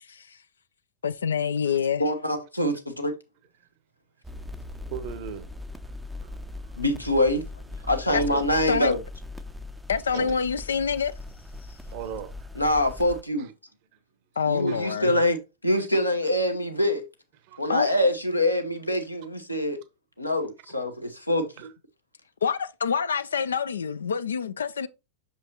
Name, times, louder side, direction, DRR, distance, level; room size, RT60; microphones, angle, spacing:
voice 1, 1.0-2.0 8.1-8.2 8.7-8.9 9.9-11.1 14.4-15.2 17.7-17.9 22.4-24.9, left 6 dB, 70° left, 0.3 m, -26 dB
voice 2, 2.0-3.1 6.8-7.4 7.9-9.0 12.6-13.5 14.5-17.0 17.6-19.8 20.2-21.4, left 1 dB, 90° left, 1.0 m, -25 dB
sound 1, 4.2-13.2, left 2 dB, 5° right, 0.5 m, -40 dB
voice 3, 4.9-5.5 6.2-6.8 7.8-8.9 10.1-10.3 11.9-12.5 13.4-13.5 14.7-15.0 17.4-17.9 20.7-20.8 21.6-21.7, right 8 dB, 45° right, 0.8 m, -39 dB
6.1 x 5.6 x 2.8 m
figure-of-eight pair, 90°, 0 cm